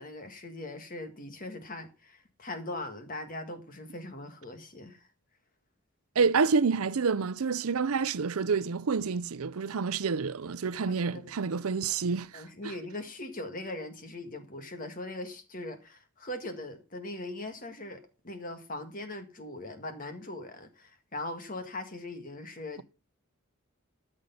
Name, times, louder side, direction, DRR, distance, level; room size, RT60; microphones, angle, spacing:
voice 1, 0.0-5.0 10.9-11.4 12.3-22.8, left 2 dB, 40° left, 1.7 m, -40 dB
voice 2, 6.2-12.4, right 5 dB, 75° right, 0.6 m, -28 dB
13.0 x 6.7 x 5.6 m
head